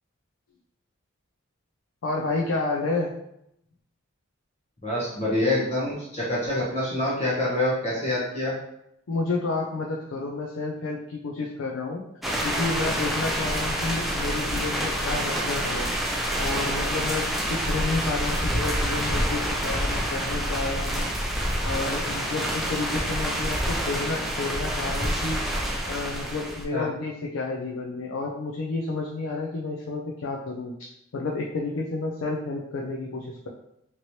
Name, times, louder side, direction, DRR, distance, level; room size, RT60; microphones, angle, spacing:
voice 1, 2.0-3.1 9.1-12.0 12.4-15.9 16.4-21.1 21.6-25.4 25.9-30.7 31.1-33.5, left 3 dB, 75° left, -1 dB, 0.4 m, -30 dB
voice 2, 4.8-8.5 26.7-26.9, left 1 dB, 35° left, -7 dB, 0.8 m, -26 dB
sound 1, 12.2-26.6, equal, ahead, 0.3 m, -27 dB
3.0 x 2.9 x 2.7 m, 0.79 s
head